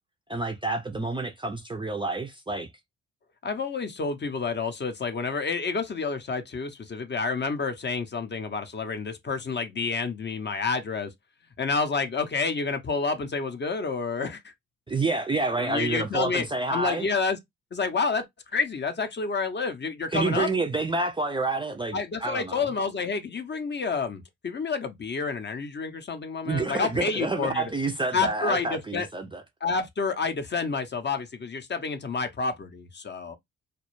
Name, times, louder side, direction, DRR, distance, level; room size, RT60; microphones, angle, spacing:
voice 1, 0.3-2.7 14.9-17.1 20.1-22.7 26.4-29.4, right 3 dB, 15° right, 0.4 m, -28 dB
voice 2, 3.4-11.1 11.6-14.5 15.6-16.5 16.7-17.4 17.7-18.2 18.5-20.5 21.9-27.7 28.1-29.1 29.6-33.4, left 4 dB, 35° left, 0.6 m, -29 dB
2.2 x 2.0 x 3.0 m
supercardioid pair, 50°, 33 cm